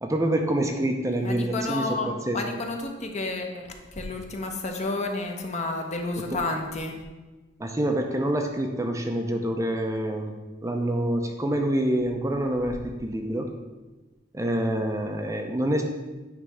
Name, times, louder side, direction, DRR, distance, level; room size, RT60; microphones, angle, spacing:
voice 1, 0.0-2.4 7.6-10.3 10.6-13.5 14.3-15.8, right 1 dB, 15° right, 3 dB, 0.6 m, -26 dB
voice 2, 1.2-7.0, left 2 dB, 40° left, 2 dB, 1.0 m, -31 dB
9.6 x 3.4 x 6.2 m, 1.2 s
head